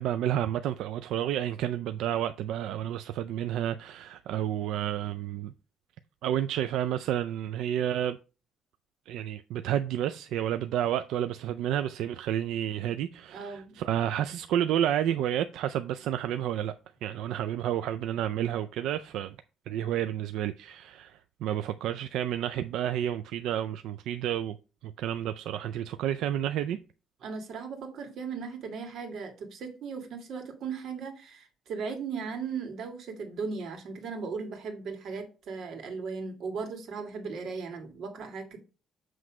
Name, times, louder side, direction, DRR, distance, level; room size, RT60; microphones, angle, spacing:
voice 1, 0.0-5.5 6.2-8.2 9.1-16.7 17.0-19.4 19.7-24.6 24.8-26.8, right 11 dB, 90° right, 0.4 m, -30 dB
voice 2, 13.3-13.7 27.2-38.6, right 5 dB, 60° right, 1.9 m, -37 dB
7.7 x 3.2 x 4.8 m
cardioid pair, 135°, 0 cm